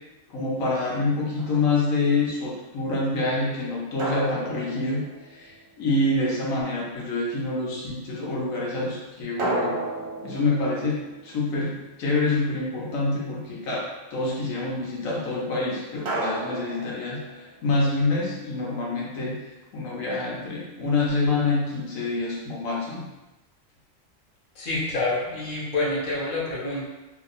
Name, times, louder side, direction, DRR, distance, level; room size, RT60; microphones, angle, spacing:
voice 1, 0.3-5.0 5.3-9.8 10.2-19.4 19.7-23.0, left 2 dB, 85° left, -4 dB, 1.2 m, -26 dB
sound 1, 1.4-1.9 4.0-5.8 9.4-12.0 16.1-17.7, right 2 dB, 80° right, 1.2 m, -33 dB
voice 2, 24.6-26.9, left 2 dB, 40° left, -6 dB, 1.0 m, -27 dB
2.8 x 2.7 x 3.9 m, 1.0 s
omnidirectional pair, 1.4 m